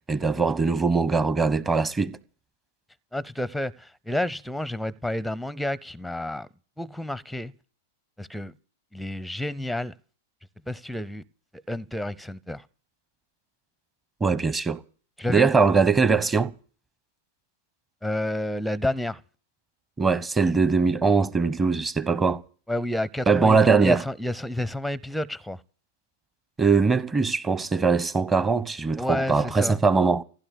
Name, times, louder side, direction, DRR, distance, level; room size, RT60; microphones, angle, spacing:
voice 1, 0.1-2.2 14.2-14.8 15.3-16.5 20.0-22.4 23.3-24.0 26.6-30.2, right 4 dB, 15° right, 1.1 m, -21 dB
voice 2, 3.1-6.5 6.8-7.5 8.2-8.5 8.9-9.9 10.7-11.2 11.7-12.7 15.2-15.5 18.0-19.2 22.7-25.6 29.0-29.8, left 1 dB, ahead, 0.7 m, -30 dB
15.5 x 10.0 x 8.3 m
figure-of-eight pair, 100°, 0 cm